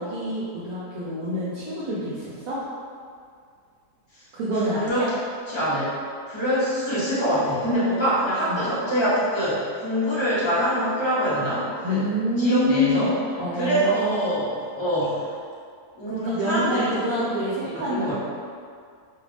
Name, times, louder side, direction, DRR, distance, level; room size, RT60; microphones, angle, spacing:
voice 1, 0.0-2.6 4.3-5.1 8.5-8.6 11.8-13.1 13.4-14.3 16.1-18.1, equal, 70° right, -8 dB, 0.9 m, -26 dB
voice 2, 4.6-5.0 5.5-5.9 6.3-12.0 12.4-13.1 13.5-15.3 15.9-17.3 17.6-18.1, equal, 25° left, -11 dB, 0.6 m, -25 dB
2.7 x 2.4 x 3.3 m, 2.2 s
omnidirectional pair, 1.7 m